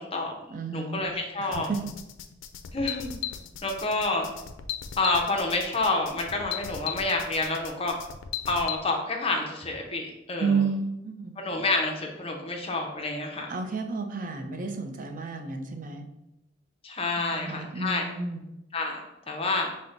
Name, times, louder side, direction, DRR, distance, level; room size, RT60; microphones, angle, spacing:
voice 1, 0.0-0.3 0.7-1.7 2.7-3.2 3.6-4.3 5.0-7.9 8.5-10.6 11.4-13.5 16.8-18.1 18.7-19.7, left 3 dB, 30° left, 1 dB, 0.6 m, -28 dB
voice 2, 0.5-1.0 1.4-1.9 10.4-11.3 13.5-16.0 17.2-18.4, right 4 dB, 45° right, 5 dB, 0.5 m, -31 dB
sound 1, 1.5-8.8, left 10 dB, 80° left, 0.4 m, -37 dB
5.8 x 2.1 x 3.8 m, 0.90 s
head